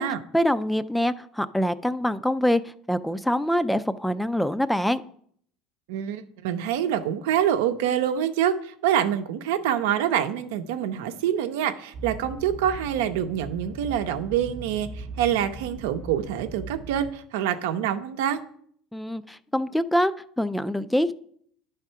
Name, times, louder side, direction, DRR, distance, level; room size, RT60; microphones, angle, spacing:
voice 1, 0.3-2.6 2.9-5.0 18.9-20.1 20.4-21.1, equal, 5° left, 14 dB, 0.3 m, -24 dB
voice 2, 5.9-18.4, right 10 dB, 85° right, 9 dB, 0.7 m, -26 dB
sound 1, 11.9-17.1, right 3 dB, 50° right, 0.7 m, -39 dB
10.5 x 3.6 x 5.6 m, 0.64 s
supercardioid pair, 120°, 0 cm